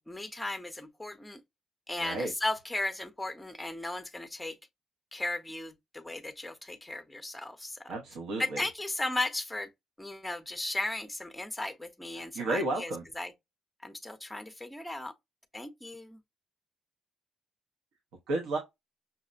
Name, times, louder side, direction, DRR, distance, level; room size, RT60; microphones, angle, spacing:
voice 1, 0.0-1.4 1.9-4.6 5.1-7.8 8.4-9.7 10.0-12.9 13.2-13.3 13.8-15.1 15.5-16.2, left 2 dB, 5° left, 0.5 m, -36 dB
voice 2, 2.0-2.3 7.9-8.6 12.1-13.0 18.3-18.6, right 2 dB, 85° right, 0.7 m, -32 dB
5.6 x 2.0 x 2.5 m
cardioid pair, 90°, 0 cm